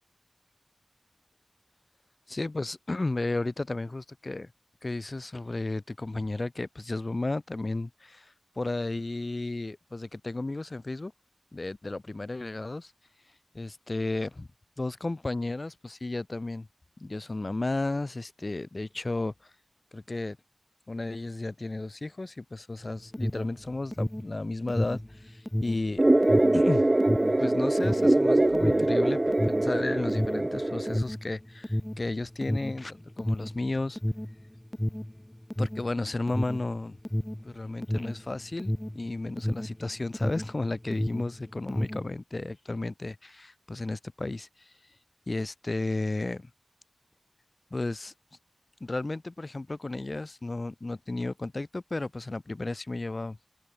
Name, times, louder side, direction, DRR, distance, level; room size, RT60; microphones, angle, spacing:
voice 1, 2.3-4.5 4.8-8.3 8.6-11.1 11.5-12.9 13.5-14.5 14.8-16.7 17.0-19.3 19.9-20.4 20.9-26.0 26.5-26.8 27.4-34.0 35.6-37.0 37.4-44.5 45.3-46.5 47.7-48.1 48.8-53.4, left 2 dB, 50° left, 2.6 m, -33 dB
Alarm, 22.8-40.6 40.8-42.1, left 1 dB, 10° left, 2.0 m, -31 dB
sound 1, 26.0-31.0, right 1 dB, 35° right, 1.6 m, -23 dB
open air
wide cardioid pair, 45°, 0 cm